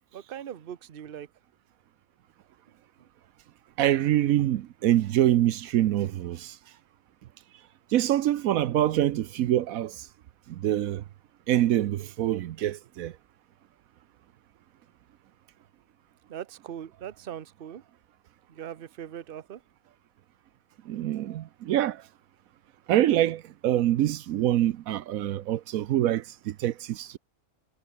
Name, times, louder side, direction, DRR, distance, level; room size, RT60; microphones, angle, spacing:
voice 1, 0.1-1.3 3.0-3.1 16.3-17.8 18.5-19.6, right 9 dB, 45° right, 1.0 m, -40 dB
voice 2, 3.8-6.5 7.9-10.1 10.5-11.0 11.5-13.1 20.9-22.0 22.9-27.2, right 12 dB, 80° right, 1.1 m, -25 dB
omnidirectional pair, 1.5 m